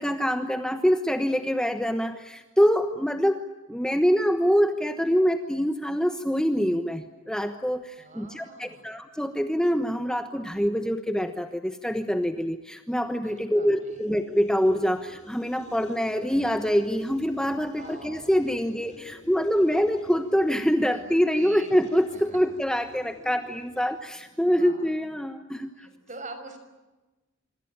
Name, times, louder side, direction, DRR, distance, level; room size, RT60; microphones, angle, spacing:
voice 1, 0.0-3.4 3.7-25.9, equal, 5° left, 7 dB, 1.1 m, -25 dB
voice 2, 8.0-9.0 13.2-14.0 17.8-18.5 20.9-21.7 22.1-22.4 24.1-25.0 25.5-26.6, right 2 dB, 40° right, 8 dB, 5.8 m, -45 dB
sound 1, 13.9-24.4, left 1 dB, 35° left, 3.3 m, -50 dB
26.5 x 25.5 x 8.7 m, 1.1 s
head